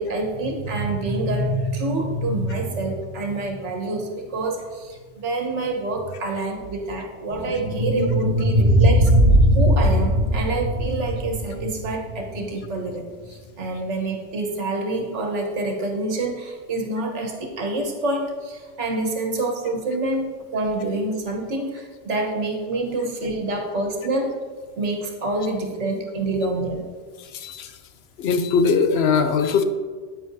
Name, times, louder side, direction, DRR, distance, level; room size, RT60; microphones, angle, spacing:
voice 1, 0.0-9.1 9.5-24.3 24.8-26.8, right 2 dB, 70° right, 1 dB, 1.5 m, -27 dB
sound 1, 7.3-12.4, equal, 55° right, 1.6 m, -19 dB
voice 2, 27.2-27.7 28.2-29.6, left 5 dB, 65° left, 8 dB, 0.8 m, -20 dB
8.8 x 8.7 x 2.7 m, 1.5 s
omnidirectional pair, 1.3 m